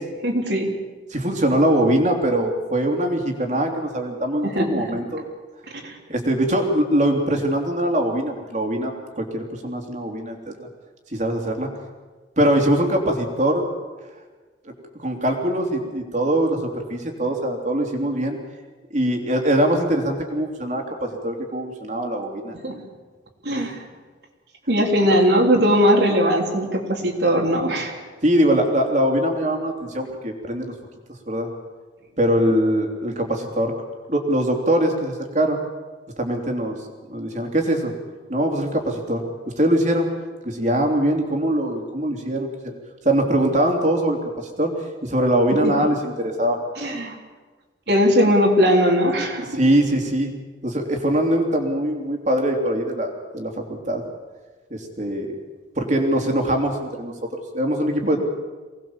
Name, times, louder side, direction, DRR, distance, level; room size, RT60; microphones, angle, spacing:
voice 1, 0.2-0.7 4.4-4.8 5.8-6.0 22.5-22.8 23.4-23.8 24.7-27.9 45.6-45.8 46.8-47.1 47.9-49.5, equal, 70° right, 1 dB, 3.5 m, -19 dB
voice 2, 1.1-5.2 6.1-10.7 11.1-11.7 12.4-13.7 14.6-14.7 15.0-18.4 18.9-22.5 23.5-23.7 28.2-30.7 31.3-31.5 32.2-33.7 34.1-35.6 36.2-36.8 37.1-37.9 38.3-39.2 39.6-40.1 40.4-42.7 43.0-44.2 44.6-44.7 45.0-46.6 49.5-50.3 50.6-54.0 54.7-55.3 55.7-58.2, right 1 dB, 40° right, 2 dB, 3.2 m, -22 dB
24.0 x 19.0 x 7.3 m, 1.4 s
head